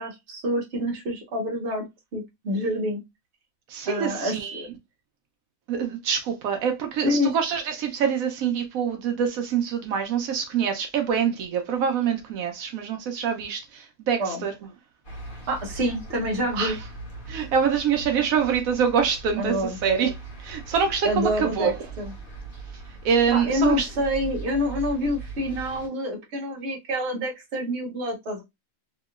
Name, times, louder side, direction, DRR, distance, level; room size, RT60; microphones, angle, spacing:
voice 1, 0.0-1.9 2.1-3.0 3.8-4.7 7.0-7.3 14.2-14.4 15.5-16.8 19.4-19.8 21.0-21.7 22.0-22.1 23.3-28.4, equal, 55° right, 1.2 m, -27 dB
voice 2, 3.7-4.7 5.7-14.5 16.5-16.8 17.3-20.1 20.4-21.9 22.9-23.9, right 7 dB, 85° right, 1.1 m, -25 dB
sound 1, 15.0-25.9, right 3 dB, 40° left, 1.2 m, -40 dB
2.9 x 2.8 x 2.3 m
omnidirectional pair, 1.5 m